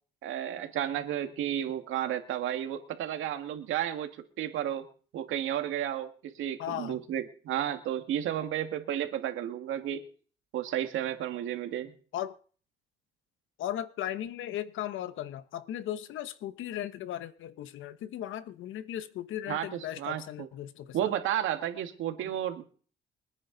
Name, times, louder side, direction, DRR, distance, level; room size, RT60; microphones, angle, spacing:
voice 1, 0.2-4.1 4.4-4.8 5.1-10.0 10.5-11.9 19.5-20.5 20.9-22.6, right 11 dB, 85° right, 2.0 m, -32 dB
voice 2, 6.6-7.0 12.1-12.3 13.6-21.1, left 12 dB, 80° left, 1.0 m, -37 dB
27.5 x 9.9 x 4.0 m
cardioid pair, 90°, 20 cm